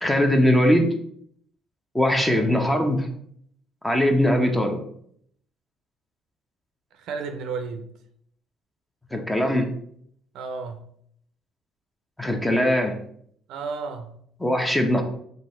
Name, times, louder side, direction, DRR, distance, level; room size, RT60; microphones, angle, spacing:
voice 1, 0.0-0.9 1.9-3.1 3.8-4.8 9.1-9.7 12.2-13.0 14.4-15.0, left 1 dB, 10° left, 0.7 m, -21 dB
voice 2, 2.1-2.5 6.9-7.9 10.3-10.8 13.5-14.2, right 4 dB, 75° right, 0.5 m, -33 dB
3.9 x 2.7 x 4.2 m
cardioid pair, 110°, 0 cm